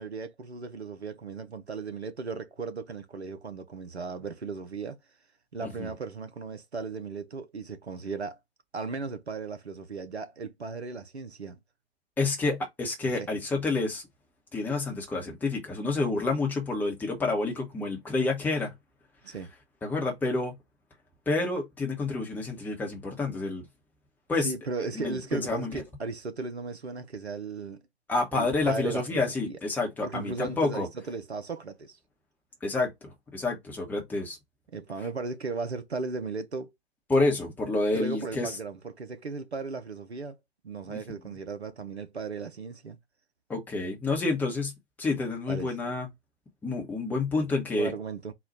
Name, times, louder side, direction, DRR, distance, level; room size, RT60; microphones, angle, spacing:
voice 1, 0.0-5.0 5.5-8.4 8.7-11.6 13.0-13.3 19.2-19.5 24.4-27.8 28.3-29.6 30.0-32.0 34.7-36.7 37.9-40.4 40.6-43.0 45.5-45.8 47.7-48.3, right 4 dB, 80° right, 0.7 m, -36 dB
voice 2, 12.2-14.0 14.5-18.7 19.8-20.5 21.3-23.6 24.3-24.5 24.9-25.8 28.1-30.9 32.6-32.9 33.3-34.4 37.1-38.6 40.9-41.0 43.5-44.7 45.0-46.1 46.6-47.9, left 3 dB, 5° left, 0.8 m, -28 dB
4.0 x 2.3 x 3.9 m
figure-of-eight pair, 120°, 32 cm